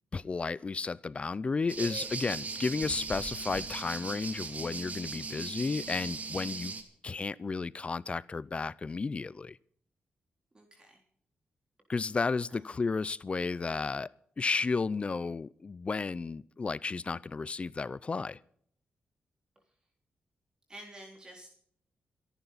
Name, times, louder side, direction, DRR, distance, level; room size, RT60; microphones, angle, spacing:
voice 1, 0.1-6.7 7.0-9.6 11.9-14.1 14.4-18.4, left 4 dB, 35° left, 0.5 m, -33 dB
sound 1, 1.7-6.8, right 4 dB, 45° right, 2.7 m, -38 dB
voice 2, 10.5-11.0 12.5-12.7 20.7-21.5, right 1 dB, 20° right, 3.6 m, -50 dB
27.0 x 11.5 x 4.1 m
cardioid pair, 100°, 4 cm